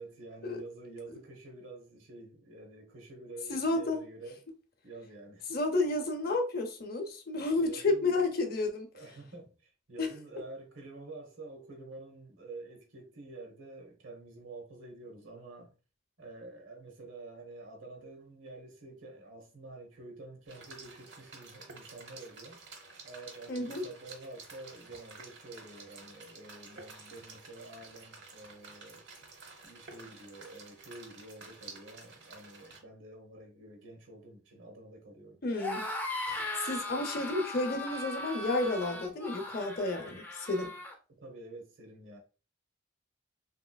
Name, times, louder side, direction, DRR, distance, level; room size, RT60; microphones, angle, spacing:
voice 1, 0.0-4.4 4.8-5.4 7.6-8.1 8.9-15.7 16.2-22.6 23.0-29.1 29.6-35.4 41.2-42.2, right 2 dB, 90° right, 1.0 m, -48 dB
voice 2, 3.5-4.0 5.5-8.9 10.0-10.1 23.5-23.8 35.4-35.9 36.3-40.7, left 2 dB, 50° left, 0.6 m, -31 dB
sound 1, 20.5-32.8, right 4 dB, 60° right, 0.8 m, -51 dB
sound 2, 35.5-41.0, left 1 dB, 10° left, 0.4 m, -38 dB
3.2 x 2.9 x 2.2 m
head